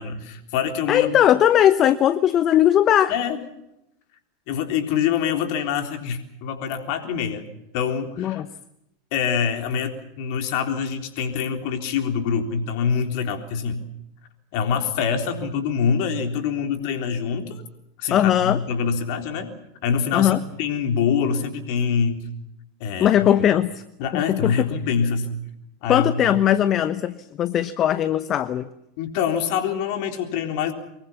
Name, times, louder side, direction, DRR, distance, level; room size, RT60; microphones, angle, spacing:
voice 1, 0.0-1.2 3.1-3.4 4.5-7.5 7.7-8.4 9.1-13.8 14.5-17.6 18.0-19.5 19.8-22.3 22.8-23.3 24.0-25.4 25.8-26.4 29.0-30.7, left 7 dB, 55° left, 5 dB, 3.6 m, -25 dB
voice 2, 0.9-3.1 8.2-8.5 18.1-18.6 20.1-20.4 23.0-23.7 24.1-24.5 25.9-28.7, left 11 dB, 35° left, 14 dB, 1.0 m, -19 dB
24.5 x 23.0 x 7.2 m, 0.84 s
figure-of-eight pair, 85°, 0 cm